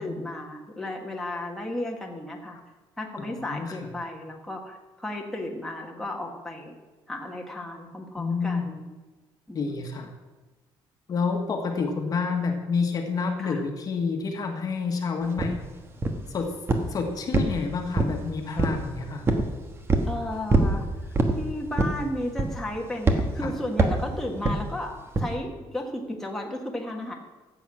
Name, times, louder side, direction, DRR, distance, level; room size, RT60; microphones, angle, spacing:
voice 1, 0.0-2.6 3.0-6.8 7.1-8.9 9.5-9.7 13.4-13.6 20.0-20.9 21.3-27.1, left 1 dB, 5° left, -1 dB, 1.7 m, -34 dB
voice 2, 3.2-3.9 8.2-8.7 9.5-10.1 11.1-15.6 16.3-16.6 16.9-19.3 23.4-23.5, left 4 dB, 40° left, 3 dB, 1.6 m, -29 dB
sound 1, 15.4-15.5 16.0-16.3 16.7-17.0 17.3-18.2 18.6-18.9 19.3-19.5 19.9-20.1 20.5-20.8 21.1-21.4 21.8-22.0 22.4-22.7 23.1-23.3 23.8-24.0 24.4-24.6 25.1-25.3, right 3 dB, 25° right, 1.3 m, -22 dB
14.0 x 8.2 x 6.3 m, 1.2 s
cardioid pair, 145°, 10 cm